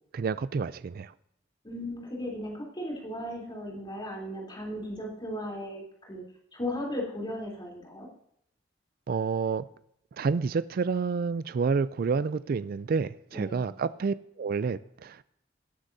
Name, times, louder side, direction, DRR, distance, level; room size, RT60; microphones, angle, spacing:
voice 1, 0.1-1.1 9.1-9.6 10.2-15.2, right 5 dB, 50° right, 15 dB, 0.4 m, -29 dB
voice 2, 1.6-6.2 6.5-8.1 13.3-13.7, left 1 dB, 25° left, -2 dB, 3.3 m, -36 dB
18.0 x 9.8 x 2.7 m, 0.74 s
head